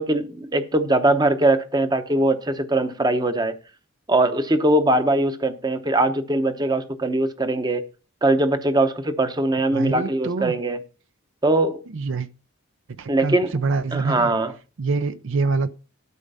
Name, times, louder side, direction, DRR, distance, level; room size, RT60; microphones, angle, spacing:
voice 1, 0.0-3.5 4.1-7.8 8.2-10.8 11.4-11.8 13.1-13.6 13.9-14.5, right 2 dB, 20° right, 0.8 m, -21 dB
voice 2, 9.7-10.5 11.9-12.3 13.0-14.3 14.8-15.7, right 4 dB, 60° right, 0.5 m, -25 dB
12.0 x 5.1 x 5.4 m
head